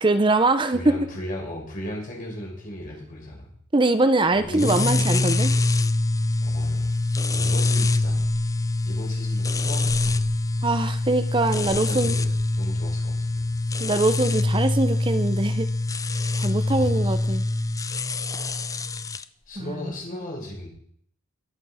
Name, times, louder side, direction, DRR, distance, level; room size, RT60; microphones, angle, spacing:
voice 1, 0.0-0.8 3.7-5.5 10.6-12.2 13.8-15.7 16.4-17.4 19.6-19.7, right 2 dB, 25° right, 10 dB, 0.8 m, -22 dB
voice 2, 0.7-3.5 4.3-5.8 6.4-7.0 7.3-8.2 8.8-10.2 11.6-13.5 16.7-17.2 19.5-20.7, equal, 40° left, -1 dB, 5.8 m, -36 dB
sound 1, 4.5-19.2, left 2 dB, 15° left, 0.5 m, -24 dB
21.5 x 7.9 x 5.8 m, 0.63 s
head